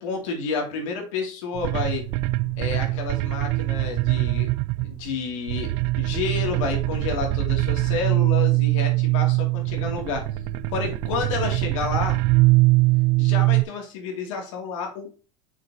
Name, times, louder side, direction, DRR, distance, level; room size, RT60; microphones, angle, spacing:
voice 1, 0.0-2.0 2.6-4.5 4.8-5.7 6.0-10.2 10.7-12.2 13.2-15.1, left 5 dB, 85° left, 2 dB, 2.7 m, -30 dB
sound 1, 1.5-5.2 5.5-13.6, right 19 dB, 65° right, 0.4 m, -22 dB
6.5 x 6.2 x 2.9 m, 0.35 s
supercardioid pair, 135°, 16 cm